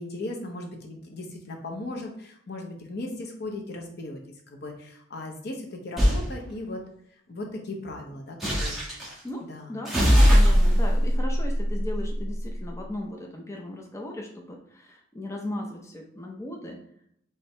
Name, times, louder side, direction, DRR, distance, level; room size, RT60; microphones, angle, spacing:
voice 1, 0.0-4.2 4.5-6.8 7.3-8.8 9.5-9.8, left 2 dB, 60° left, 2 dB, 0.8 m, -37 dB
sound 1, 6.0-6.3 8.4-9.1 9.9-12.5, equal, ahead, 1.3 m, -20 dB
voice 2, 9.7-16.8, left 1 dB, 15° left, 1 dB, 0.6 m, -37 dB
4.4 x 3.5 x 3.2 m, 0.69 s
head